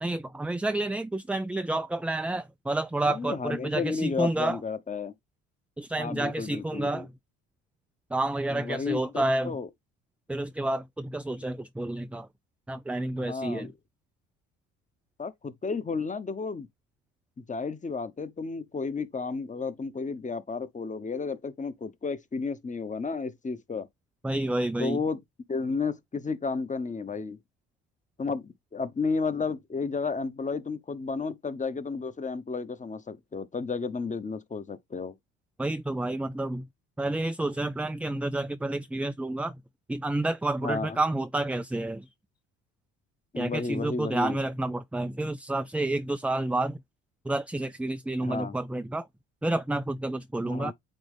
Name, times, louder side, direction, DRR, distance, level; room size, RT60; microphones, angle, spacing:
voice 1, 0.0-4.6 5.8-7.1 8.1-9.6 10.3-12.3 12.7-13.7 24.2-25.0 35.6-36.7 37.0-39.6 39.9-42.1 43.4-46.8 47.3-49.1 49.4-50.7, right 2 dB, 5° right, 0.3 m, -29 dB
voice 2, 3.0-5.1 6.0-7.1 8.5-9.7 13.2-13.7 15.2-16.7 17.5-23.9 24.8-25.2 25.5-27.4 28.2-35.1 40.6-41.0 43.3-44.4 48.2-48.6 50.4-50.7, left 4 dB, 25° left, 1.0 m, -32 dB
8.7 x 3.1 x 3.6 m
supercardioid pair, 75°, 32 cm